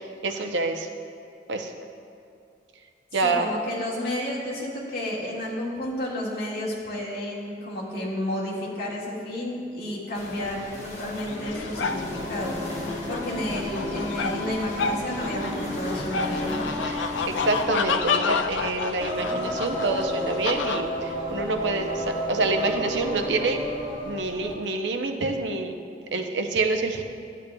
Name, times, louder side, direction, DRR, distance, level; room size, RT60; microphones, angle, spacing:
voice 1, 0.2-0.9 1.5-1.7 3.1-3.5 16.8-23.6 24.1-25.7 26.1-27.0, right 3 dB, 80° right, 5 dB, 0.6 m, -27 dB
voice 2, 3.2-12.6 13.1-16.6, left 1 dB, 60° left, -5 dB, 1.7 m, -31 dB
sound 1, 10.1-17.6, left 1 dB, 40° left, 1.3 m, -37 dB
sound 2, 11.3-20.8, left 5 dB, 90° left, 0.4 m, -30 dB
Singing, 11.4-24.6, equal, 25° right, 1.4 m, -33 dB
11.5 x 8.3 x 2.2 m, 2.5 s
head